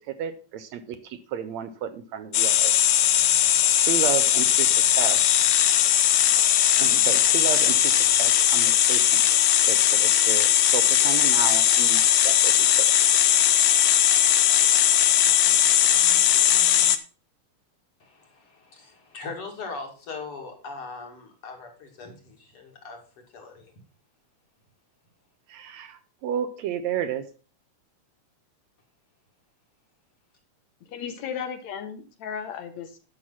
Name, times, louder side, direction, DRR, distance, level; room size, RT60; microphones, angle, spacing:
voice 1, 0.1-2.7 3.8-5.4 6.8-9.4 9.7-12.9 25.5-27.3, right 9 dB, 75° right, 10 dB, 1.8 m, -32 dB
sound 1, 2.3-17.0, left 11 dB, 90° left, 1.1 m, -19 dB
voice 2, 18.0-23.0 23.3-23.7, left 4 dB, 45° left, 2 dB, 3.2 m, -40 dB
voice 3, 30.9-33.0, left 7 dB, 70° left, 9 dB, 2.0 m, -35 dB
11.0 x 6.4 x 5.6 m, 0.37 s
omnidirectional pair, 3.5 m